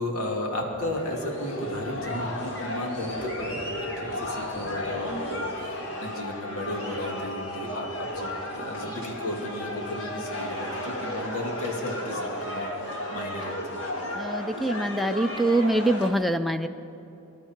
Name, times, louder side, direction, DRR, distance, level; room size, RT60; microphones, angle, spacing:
voice 1, 0.0-3.6 4.0-5.7 6.0-13.9, left 1 dB, 85° left, 0 dB, 2.6 m, -34 dB
sound 1, 0.8-16.1, left 1 dB, 55° left, 2.2 m, -34 dB
voice 2, 14.1-16.7, right 1 dB, ahead, 9 dB, 0.4 m, -24 dB
25.5 x 12.0 x 4.5 m, 2.9 s
head